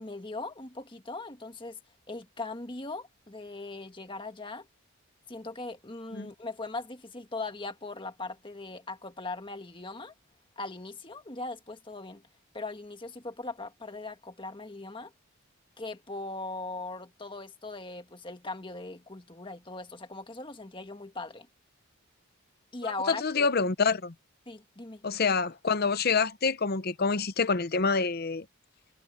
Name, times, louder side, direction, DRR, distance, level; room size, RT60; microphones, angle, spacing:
voice 1, 0.0-1.8 2.1-4.7 5.3-10.1 10.6-12.2 12.5-15.1 15.8-21.5 22.7-23.5 24.4-25.0, left 3 dB, 25° left, 1.6 m, -39 dB
voice 2, 23.1-24.1 25.0-28.4, left 5 dB, 45° left, 0.7 m, -27 dB
head